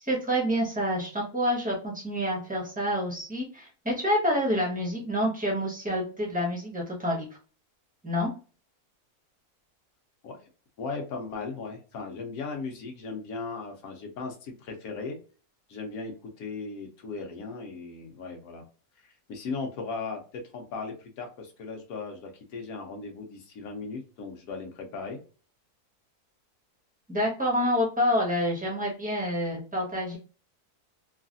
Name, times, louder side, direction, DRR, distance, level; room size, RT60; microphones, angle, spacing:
voice 1, 0.0-7.3 8.0-8.3 27.1-30.2, equal, 5° right, -3 dB, 0.9 m, -28 dB
voice 2, 10.8-15.2 15.7-18.7 19.0-25.2, left 4 dB, 70° left, 2 dB, 1.2 m, -37 dB
3.2 x 2.4 x 2.5 m, 0.36 s
omnidirectional pair, 1.6 m